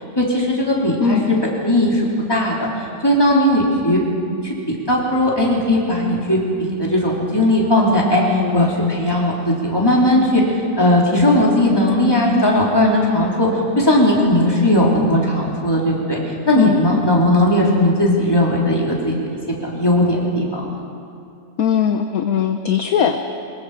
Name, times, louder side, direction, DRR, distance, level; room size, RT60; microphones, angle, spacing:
voice 1, 0.2-1.4 1.6-4.0 4.4-4.5 4.9-10.4 10.8-13.5 13.8-16.2 16.5-19.1 19.6-20.8, left 1 dB, 15° left, -4 dB, 3.5 m, -17 dB
voice 2, 1.0-1.4 8.2-8.7 16.6-16.8 21.6-23.2, left 7 dB, 60° left, 6 dB, 1.2 m, -19 dB
23.5 x 22.0 x 5.0 m, 2.5 s
omnidirectional pair, 1.9 m